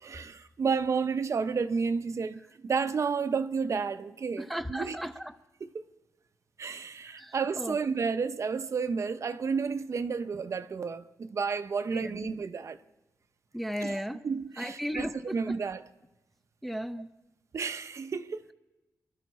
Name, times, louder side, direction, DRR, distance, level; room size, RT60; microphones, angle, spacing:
voice 1, 0.0-5.0 5.6-5.8 6.6-12.8 13.8-14.0 14.2-15.8 17.5-18.4, right 5 dB, 45° right, 0.6 m, -31 dB
voice 2, 4.4-5.4 7.1-7.8 11.9-12.3 13.5-14.2 14.6-15.5 16.6-17.1, equal, ahead, 0.5 m, -35 dB
26.5 x 12.0 x 4.2 m
wide cardioid pair, 140°, 7 cm